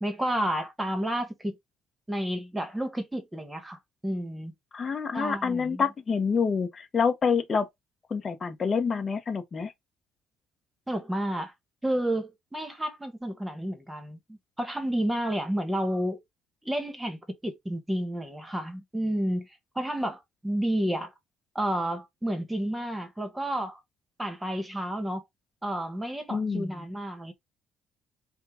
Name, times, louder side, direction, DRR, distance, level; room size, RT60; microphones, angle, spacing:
voice 1, 0.0-1.6 2.1-4.5 5.1-5.8 10.9-11.5 11.8-16.2 16.6-19.5 19.7-21.1 21.5-23.8 24.2-25.2 25.6-27.3, right 1 dB, 10° right, 1.3 m, -31 dB
voice 2, 4.7-7.7 8.1-9.7 26.3-26.7, left 5 dB, 30° left, 1.0 m, -27 dB
5.4 x 2.4 x 3.7 m
cardioid pair, 135°, 0 cm